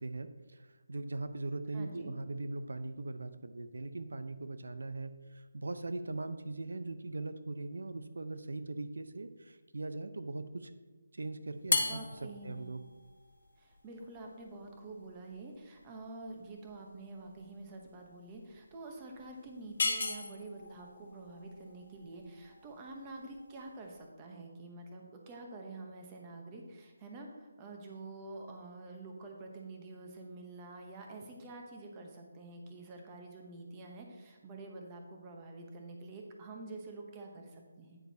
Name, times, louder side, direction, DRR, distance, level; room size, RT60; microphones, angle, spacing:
voice 1, 0.0-10.7 11.1-12.0 12.4-12.8, right 2 dB, 80° right, 10 dB, 0.7 m, -40 dB
voice 2, 1.7-2.2 11.9-12.7 13.6-38.0, right 2 dB, 15° right, 1 dB, 0.8 m, -47 dB
sound 1, 11.6-24.0, left 3 dB, 45° left, 1.2 m, -39 dB
10.5 x 9.2 x 2.8 m, 1.2 s
hypercardioid pair, 175°, 0 cm